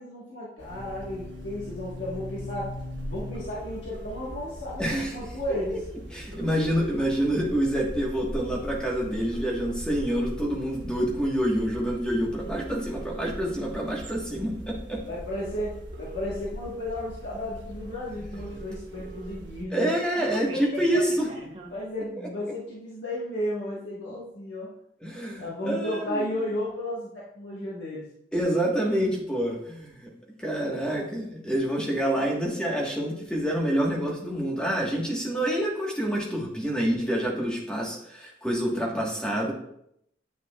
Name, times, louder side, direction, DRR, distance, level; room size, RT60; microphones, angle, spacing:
voice 1, 0.0-2.7 3.1-5.8 15.1-19.9 20.5-24.7 25.4-28.0 30.6-30.7, left 1 dB, 85° left, -7 dB, 1.4 m, -34 dB
sound 1, 0.6-19.6, equal, 80° right, 1.2 m, -40 dB
sound 2, 3.3-4.4 5.5-5.6 5.9-6.0 6.2-7.6 8.1-8.3 9.2-10.3 11.0-11.3 12.2-13.3 14.6-14.7 15.2-16.3 17.0-17.1 17.4-17.5 17.7-17.8 18.0-19.3 19.7-21.8, right 5 dB, 30° right, 1.0 m, -44 dB
voice 2, 4.8-5.4 6.1-15.0 19.7-21.3 25.0-26.4 28.3-30.1 30.4-39.5, equal, 5° left, -3 dB, 1.3 m, -27 dB
9.4 x 5.8 x 2.3 m, 0.74 s
head